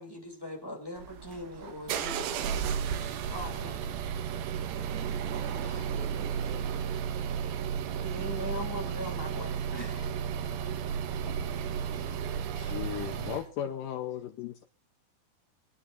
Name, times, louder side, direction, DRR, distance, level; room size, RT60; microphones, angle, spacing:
voice 1, 0.0-2.6 3.0-3.8 5.6-6.1 8.0-10.1 11.2-11.4 12.9-13.3, left 1 dB, 5° left, 1.9 m, -41 dB
sound 1, 1.0-13.5, right 7 dB, 85° right, 3.2 m, -33 dB
voice 2, 5.7-7.1 10.7-12.7, right 2 dB, 55° right, 7.3 m, -51 dB
voice 3, 12.6-14.6, left 10 dB, 80° left, 1.9 m, -36 dB
27.5 x 9.8 x 2.5 m
omnidirectional pair, 4.8 m